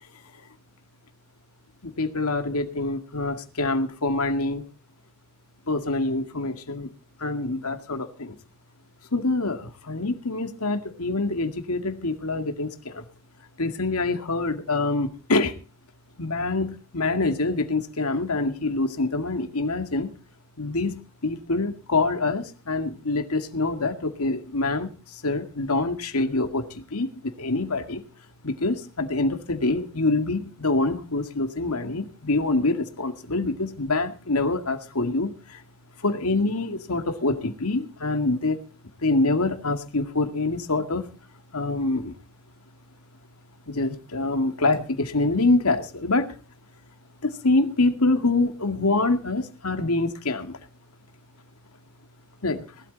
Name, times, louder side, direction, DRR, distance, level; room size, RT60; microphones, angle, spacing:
voice 1, 1.8-4.6 5.7-6.9 7.2-8.3 9.1-13.0 13.6-15.6 16.2-20.1 20.6-24.9 25.2-28.0 28.4-35.6 36.0-38.6 39.0-41.0 41.5-42.1 43.7-46.3 47.2-50.6 52.4-52.6, left 2 dB, 75° left, 7 dB, 2.2 m, -25 dB
19.5 x 13.0 x 4.1 m, 0.35 s
head